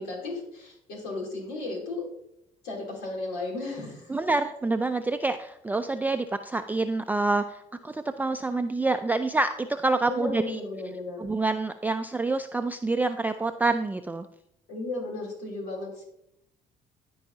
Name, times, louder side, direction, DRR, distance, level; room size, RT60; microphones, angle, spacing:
voice 1, 0.0-2.0 2.6-4.2 10.1-11.3 14.7-16.0, left 2 dB, 80° left, -1 dB, 3.0 m, -35 dB
voice 2, 4.1-10.6 11.2-14.3, right 3 dB, 10° right, 8 dB, 0.4 m, -27 dB
13.5 x 4.7 x 2.7 m, 0.78 s
supercardioid pair, 70°, 17 cm